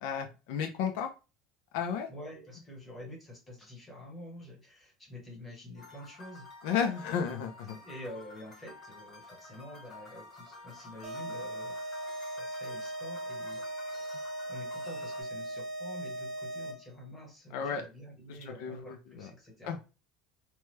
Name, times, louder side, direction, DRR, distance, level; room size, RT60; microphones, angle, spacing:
voice 1, 0.0-1.1 1.7-2.1 6.6-7.8 17.5-17.8 18.3-19.3 19.6-19.8, left 7 dB, 75° left, 6 dB, 0.5 m, -33 dB
voice 2, 2.1-6.5 7.8-14.1 14.5-19.8, left 1 dB, 10° left, 0 dB, 1.1 m, -48 dB
sound 1, 5.8-15.2, left 3 dB, 30° left, 1.3 m, -50 dB
sound 2, 11.0-17.0, right 1 dB, 50° right, 0.9 m, -39 dB
2.9 x 2.2 x 3.1 m, 0.30 s
cardioid pair, 160°, 0 cm